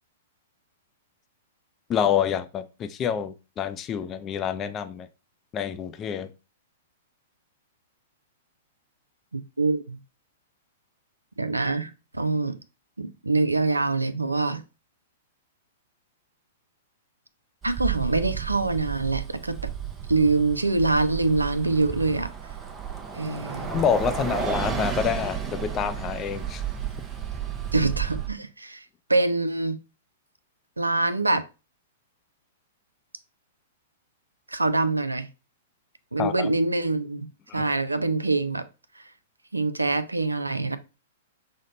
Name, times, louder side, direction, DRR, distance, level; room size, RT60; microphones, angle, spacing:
voice 1, 1.9-5.1 5.5-6.3 23.7-26.6 36.2-36.5 37.5-37.6, left 8 dB, 25° left, 0.4 m, -27 dB
voice 2, 9.3-10.0 11.4-12.6 13.0-14.6 17.6-19.6 20.1-22.3 23.1-23.7 27.7-28.8 29.1-29.8 30.8-31.4 34.5-35.3 36.1-37.3 37.5-38.6 39.5-40.8, right 3 dB, 90° right, 0.4 m, -25 dB
Bus, 17.6-28.3, right 7 dB, 20° right, 0.6 m, -32 dB
6.3 x 2.1 x 3.8 m
figure-of-eight pair, 105°, 0 cm